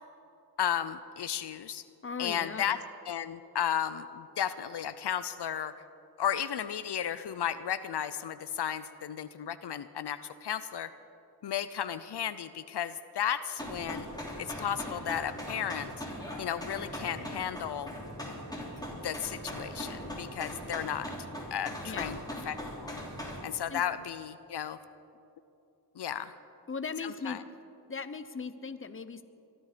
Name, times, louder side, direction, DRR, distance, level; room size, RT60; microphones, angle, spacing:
voice 1, 0.6-1.8 2.2-2.8 3.1-5.7 6.2-10.9 11.4-14.1 14.4-16.0 16.4-17.9 18.9-21.1 21.5-22.2 22.5-23.0 23.4-24.8 26.0-26.3 27.0-27.4, left 9 dB, 80° left, 13 dB, 0.6 m, -34 dB
voice 2, 2.0-2.8 21.8-22.2 23.7-23.8 26.7-27.4 27.9-29.2, left 5 dB, 30° left, 11 dB, 0.8 m, -38 dB
sound 1, 13.6-23.4, equal, 10° left, 3.4 m, -40 dB
22.5 x 12.5 x 5.1 m, 2.8 s
wide cardioid pair, 70°, 40 cm